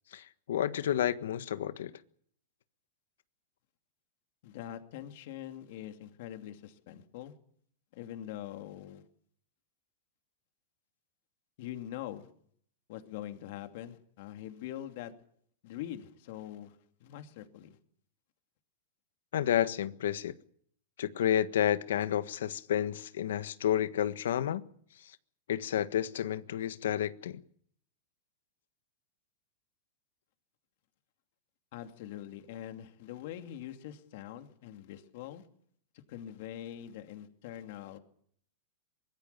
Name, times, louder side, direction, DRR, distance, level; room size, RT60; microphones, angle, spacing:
voice 1, 0.1-1.9 19.3-20.3 21.0-24.6 25.5-27.4, left 10 dB, 85° left, 1.5 m, -30 dB
voice 2, 4.4-7.3 7.9-9.1 11.6-12.3 12.9-15.1 15.6-17.8 31.7-35.5 36.1-38.0, left 12 dB, 50° left, 2.6 m, -43 dB
24.0 x 22.0 x 6.9 m
supercardioid pair, 170°, 0 cm